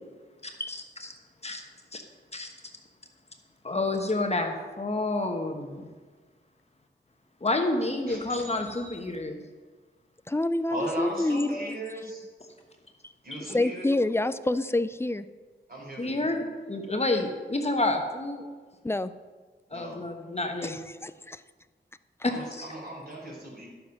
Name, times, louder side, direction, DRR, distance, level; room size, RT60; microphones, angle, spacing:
voice 1, 0.4-1.1 1.4-1.6 1.9-2.0 2.3-2.5 3.6-5.9 7.4-9.4 13.3-13.4 16.0-18.5 19.7-20.8 22.5-22.7, left 2 dB, 30° left, 3 dB, 1.1 m, -29 dB
voice 2, 8.1-9.0 10.7-12.2 13.2-13.9 15.7-16.3 19.7-20.0 22.3-23.7, right 1 dB, 50° right, -3 dB, 3.9 m, -38 dB
voice 3, 10.3-11.8 13.0-13.1 13.5-15.2 18.8-19.1 20.6-21.4, left 2 dB, 10° left, 13 dB, 0.4 m, -27 dB
12.0 x 7.6 x 5.9 m, 1.4 s
wide cardioid pair, 120°, 20 cm